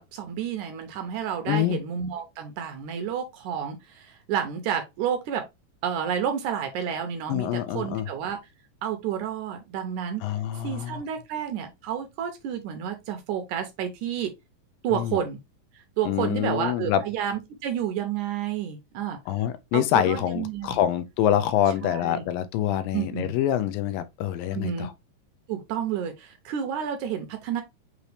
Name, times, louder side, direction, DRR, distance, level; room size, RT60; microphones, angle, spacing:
voice 1, 0.0-5.4 5.8-8.4 8.8-10.2 10.6-14.3 14.8-15.4 15.7-19.2 19.7-20.8 21.8-22.2 22.9-23.3 24.5-24.9 25.5-27.6, right 9 dB, 75° right, 1.9 m, -30 dB
voice 2, 1.5-1.8 7.3-8.1 10.2-11.0 14.9-15.2 16.0-17.0 19.3-24.9, left 11 dB, 85° left, 2.3 m, -26 dB
6.0 x 2.8 x 3.2 m
omnidirectional pair, 4.0 m